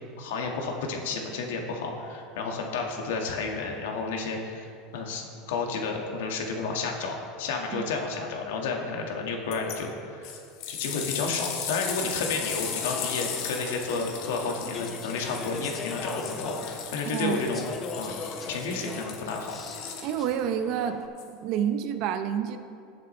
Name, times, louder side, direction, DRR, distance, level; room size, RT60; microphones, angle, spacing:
voice 1, 0.2-10.3 10.7-17.7 18.0-18.1 18.5-19.6, left 4 dB, 90° left, 1 dB, 1.8 m, -31 dB
sound 1, 9.5-9.8 10.2-20.4 21.2-21.3, left 8 dB, 60° left, 1.5 m, -37 dB
Speech / Chatter, 11.7-21.1, left 4 dB, 25° left, 0.8 m, -41 dB
voice 2, 20.0-21.0 21.3-22.6, right 9 dB, 50° right, 8 dB, 0.8 m, -28 dB
18.5 x 7.4 x 3.3 m, 2.4 s
supercardioid pair, 155°, 0 cm